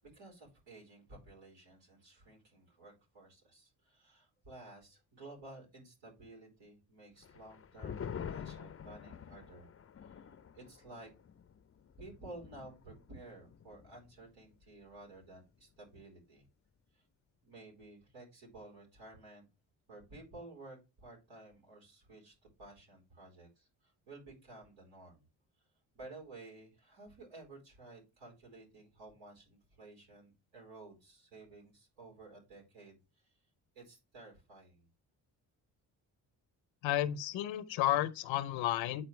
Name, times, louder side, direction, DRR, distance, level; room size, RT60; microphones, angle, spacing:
voice 1, 0.0-9.7 10.0-10.3 10.5-11.1 12.0-16.5 16.9-17.0 17.4-19.5 19.9-25.3 25.9-33.4 33.7-34.9, right 2 dB, 75° right, 4.4 m, -54 dB
sound 1, 7.2-14.2 14.5-14.6 14.9-15.4, left 7 dB, 30° left, 0.6 m, -47 dB
voice 2, 36.8-39.0, left 13 dB, 90° left, 0.8 m, -32 dB
8.8 x 4.3 x 3.2 m
supercardioid pair, 60°, 45 cm